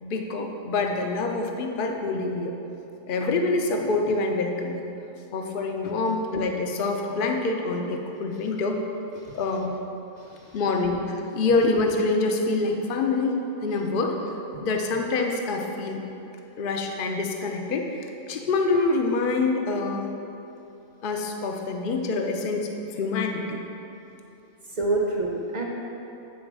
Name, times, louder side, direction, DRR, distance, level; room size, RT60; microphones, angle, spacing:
voice 1, 0.0-2.5 3.1-4.8 5.3-8.8 9.3-9.7 10.5-14.2 14.6-16.0 16.6-17.9 18.3-20.1 21.0-22.7 23.0-23.6, left 3 dB, 50° left, 3 dB, 0.8 m, -26 dB
voice 2, 10.2-10.6 24.7-25.7, right 2 dB, 35° right, -1 dB, 0.9 m, -28 dB
9.6 x 4.2 x 6.1 m, 2.9 s
omnidirectional pair, 1.4 m